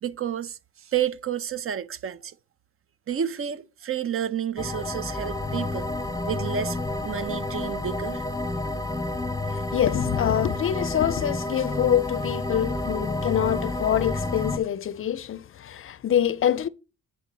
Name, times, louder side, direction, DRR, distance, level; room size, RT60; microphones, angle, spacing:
voice 1, 0.0-2.3 3.1-5.9 6.3-6.8 7.0-8.2, right 9 dB, 45° right, 0.6 m, -30 dB
sound 1, 4.6-14.6, left 2 dB, 10° left, 0.8 m, -30 dB
voice 2, 9.5-16.7, left 10 dB, 45° left, 0.5 m, -25 dB
9.1 x 4.5 x 5.3 m
cardioid pair, 90°, 30 cm